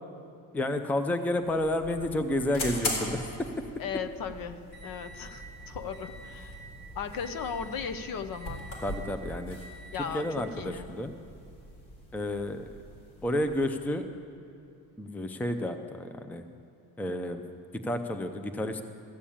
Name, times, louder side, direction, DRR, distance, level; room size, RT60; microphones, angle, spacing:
voice 1, 0.5-3.2 8.8-9.6 10.1-11.1 12.1-12.7 13.2-14.0 15.0-16.4 17.0-17.4 17.7-18.8, left 1 dB, 5° left, 8 dB, 0.5 m, -30 dB
sound 1, 1.3-13.8, left 1 dB, 80° left, 4.0 m, -41 dB
voice 2, 3.8-6.6 7.0-8.7 9.9-10.3 10.6-10.8, left 7 dB, 60° left, 10 dB, 0.8 m, -37 dB
14.0 x 7.2 x 8.6 m, 2.7 s
cardioid pair, 135°, 39 cm